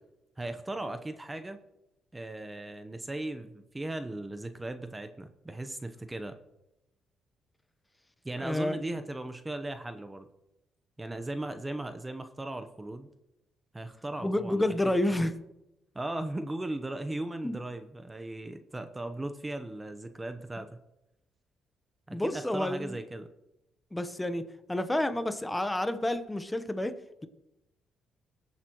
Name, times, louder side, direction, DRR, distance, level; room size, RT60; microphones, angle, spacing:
voice 1, 0.4-1.6 2.1-6.4 8.2-10.3 11.0-13.1 13.7-14.7 15.1-15.3 15.9-20.8 22.1-23.3, right 1 dB, 15° right, 9 dB, 0.9 m, -37 dB
voice 2, 8.4-9.0 14.2-15.3 17.4-17.6 22.1-23.0 23.9-27.3, left 1 dB, 10° left, 10 dB, 0.9 m, -30 dB
20.5 x 8.3 x 3.0 m, 0.90 s
cardioid pair, 90°, 0 cm